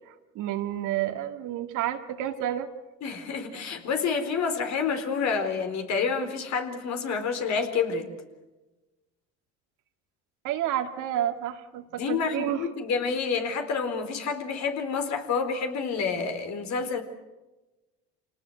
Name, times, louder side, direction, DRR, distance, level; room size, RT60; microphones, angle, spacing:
voice 1, 0.3-2.7 10.4-12.7, right 12 dB, 65° right, 6 dB, 2.4 m, -30 dB
voice 2, 3.0-8.1 12.0-17.0, left 5 dB, 55° left, 6 dB, 4.3 m, -28 dB
27.5 x 19.0 x 8.0 m, 1.1 s
hypercardioid pair, 75°, 33 cm